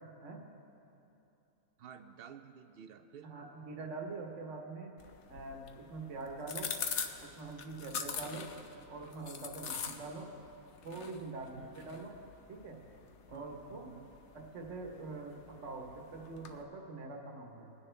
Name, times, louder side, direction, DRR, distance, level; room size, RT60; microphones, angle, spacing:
voice 1, 1.8-3.3 9.9-10.0 11.6-12.0 13.3-14.1, right 8 dB, 75° right, 9 dB, 0.5 m, -52 dB
voice 2, 3.2-5.0 5.3-6.7 7.2-8.5 8.9-10.3 10.8-12.2 12.5-12.8 13.3-13.9 14.3-17.7, right 3 dB, 55° right, 1 dB, 1.5 m, -44 dB
sound 1, 5.0-16.6, left 6 dB, 55° left, 0.9 m, -45 dB
22.5 x 9.9 x 3.3 m, 2.8 s
omnidirectional pair, 1.6 m